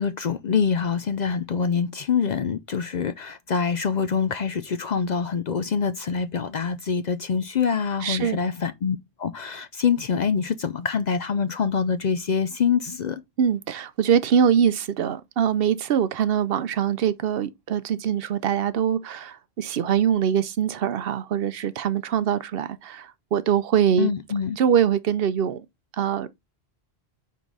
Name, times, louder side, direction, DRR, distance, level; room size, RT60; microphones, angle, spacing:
voice 1, 0.0-13.2 24.0-24.6, left 6 dB, 55° left, 0.5 m, -25 dB
voice 2, 8.0-8.4 13.4-24.1 24.6-25.7 26.0-26.3, right 8 dB, 65° right, 0.8 m, -23 dB
5.3 x 4.7 x 3.9 m
omnidirectional pair, 1.1 m